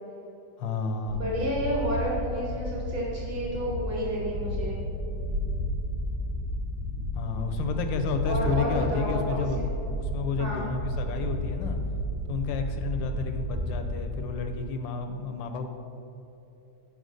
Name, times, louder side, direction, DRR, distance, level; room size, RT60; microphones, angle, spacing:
voice 1, 0.6-1.2 7.1-11.8 12.3-15.7, left 5 dB, 80° left, 6 dB, 1.4 m, -31 dB
voice 2, 1.1-4.8 8.2-9.8 10.4-10.7, equal, 60° right, -6 dB, 2.3 m, -31 dB
sound 1, 1.1-14.2, equal, 80° right, 2.1 m, -32 dB
5.6 x 5.2 x 6.4 m, 2.9 s
omnidirectional pair, 2.0 m